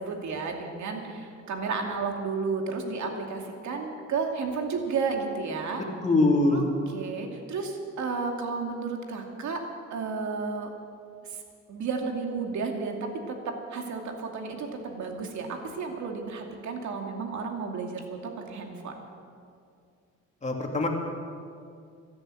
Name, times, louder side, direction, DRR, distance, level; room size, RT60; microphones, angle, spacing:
voice 1, 0.0-5.8 6.5-6.6 6.9-9.6 9.9-10.7 11.3-11.4 11.7-19.0, right 4 dB, 70° right, 3 dB, 2.5 m, -32 dB
voice 2, 6.0-6.7 20.4-20.9, left 2 dB, 25° left, 0 dB, 2.8 m, -22 dB
13.5 x 11.5 x 9.0 m, 2.3 s
cardioid pair, 90°, 30 cm